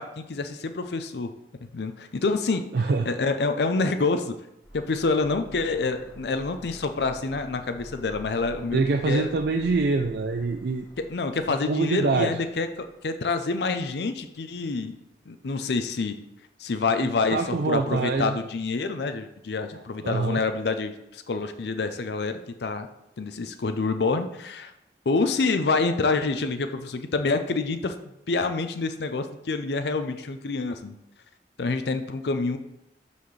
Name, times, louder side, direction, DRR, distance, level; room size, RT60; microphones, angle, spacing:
voice 1, 0.0-1.3 1.7-4.3 4.7-9.3 11.0-15.0 15.3-16.2 16.6-22.9 23.2-24.7 25.1-28.0 28.3-31.0 31.6-32.6, left 3 dB, 75° left, 8 dB, 0.5 m, -27 dB
voice 2, 2.7-3.1 8.7-10.9 11.7-12.4 17.3-18.4 20.0-20.4, right 3 dB, 70° right, 5 dB, 0.4 m, -25 dB
sound 1, 4.6-13.4 13.6-13.7, equal, 5° left, 2.3 m, -48 dB
12.5 x 4.2 x 3.2 m, 0.85 s
head